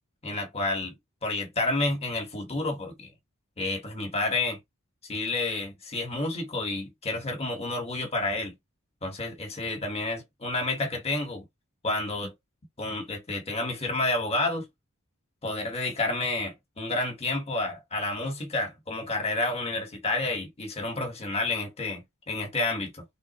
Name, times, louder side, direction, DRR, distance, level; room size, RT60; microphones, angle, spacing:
voice 1, 0.2-0.9 1.2-3.1 3.6-4.6 5.1-8.5 9.0-11.5 11.8-12.3 12.8-14.7 15.4-23.0, left 2 dB, 30° left, 1.5 m, -30 dB
3.6 x 3.6 x 3.0 m
head